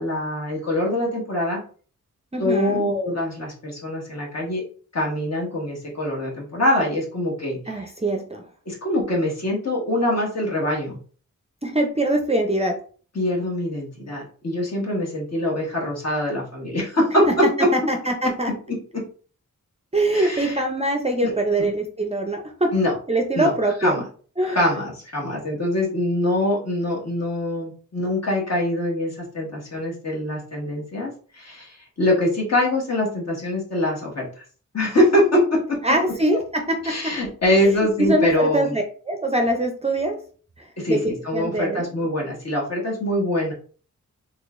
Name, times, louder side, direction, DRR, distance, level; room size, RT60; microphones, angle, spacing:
voice 1, 0.0-1.6 2.4-4.6 4.9-7.6 8.6-11.0 13.1-17.7 18.2-19.1 20.1-20.6 21.2-21.3 21.6-21.7 22.7-22.9 23.4-23.5 23.8-24.0 24.5-34.3 34.7-35.8 36.8-38.7 40.8-43.5, left 1 dB, 55° left, -3 dB, 1.4 m, -23 dB
voice 2, 2.3-2.8 7.7-8.4 11.6-12.8 17.7-18.5 19.9-22.7 23.1-24.0 24.4-24.6 35.8-37.2 37.6-40.2 40.6-41.9, right 1 dB, 20° right, 3 dB, 0.4 m, -23 dB
3.6 x 3.2 x 2.4 m, 0.42 s
wide cardioid pair, 130°, 31 cm